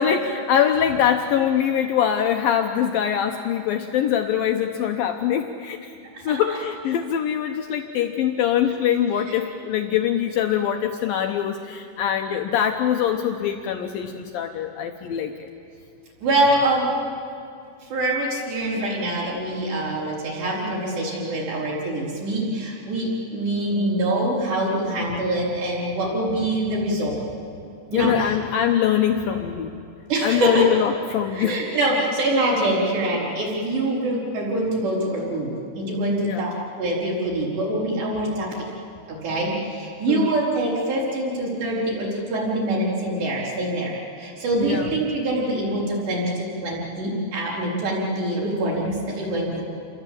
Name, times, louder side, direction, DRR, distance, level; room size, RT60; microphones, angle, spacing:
voice 1, 0.0-5.9 6.2-15.5 27.9-29.7 30.2-31.6 33.3-33.4 36.2-36.5 40.1-40.3 44.6-44.9, left 9 dB, 85° left, 4 dB, 2.0 m, -23 dB
voice 2, 16.2-16.9 17.9-27.2 27.9-28.4 30.1-30.7 31.3-38.5 39.1-49.6, right 1 dB, 60° right, -6 dB, 6.6 m, -24 dB
28.0 x 22.5 x 8.6 m, 2.4 s
omnidirectional pair, 5.5 m